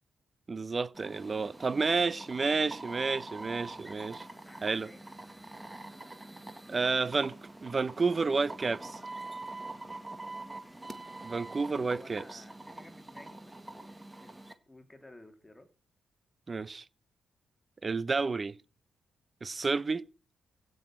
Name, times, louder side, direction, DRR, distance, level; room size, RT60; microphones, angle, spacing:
voice 1, 0.5-4.2 4.6-4.9 6.7-9.0 11.2-12.4 16.5-16.8 17.8-18.5 19.4-20.0, right 4 dB, 30° right, 0.8 m, -30 dB
sound 1, 0.9-14.5, right 2 dB, 10° right, 1.9 m, -45 dB
voice 2, 4.4-5.1 6.6-6.9 11.2-15.7, left 1 dB, 10° left, 2.9 m, -55 dB
16.0 x 6.4 x 8.9 m
cardioid pair, 95°, 0 cm